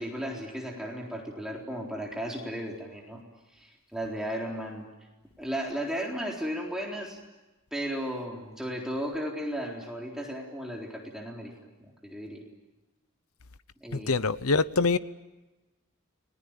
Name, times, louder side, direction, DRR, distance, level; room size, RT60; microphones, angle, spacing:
voice 1, 0.0-3.2 3.5-4.9 5.4-7.2 7.7-11.5 12.0-12.4 13.8-14.2, equal, ahead, 4.0 m, -35 dB
voice 2, 14.1-15.0, left 4 dB, 75° left, 0.9 m, -24 dB
30.0 x 21.0 x 9.0 m
head